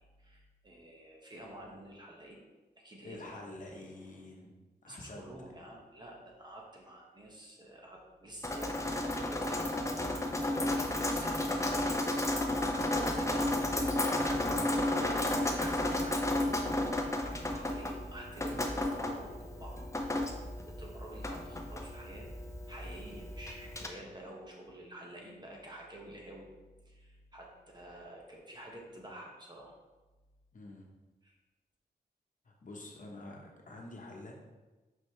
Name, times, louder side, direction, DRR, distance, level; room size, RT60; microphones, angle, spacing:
voice 1, 0.0-2.4 2.8-4.3 4.9-12.0 13.0-16.3 17.4-19.8 20.4-22.3 22.7-26.5 26.8-29.7 31.2-31.3, right 1 dB, 25° right, -2 dB, 1.4 m, -49 dB
voice 2, 3.0-4.5 4.8-5.3 30.5-30.9 32.4-34.4, left 2 dB, 50° left, 0 dB, 1.1 m, -47 dB
Drip, 8.4-23.9, left 1 dB, 15° left, 0.7 m, -33 dB
5.6 x 5.2 x 3.2 m, 1.2 s
cardioid pair, 70°, 17 cm